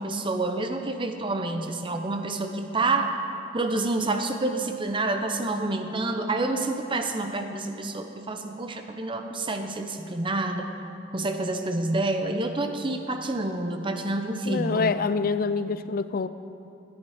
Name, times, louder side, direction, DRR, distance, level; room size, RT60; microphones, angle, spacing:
voice 1, 0.0-3.2 3.5-10.7 11.1-14.9, right 2 dB, 25° right, 6 dB, 0.7 m, -28 dB
voice 2, 14.5-16.3, left 4 dB, 50° left, 13 dB, 0.4 m, -26 dB
14.0 x 9.4 x 5.0 m, 2.6 s
head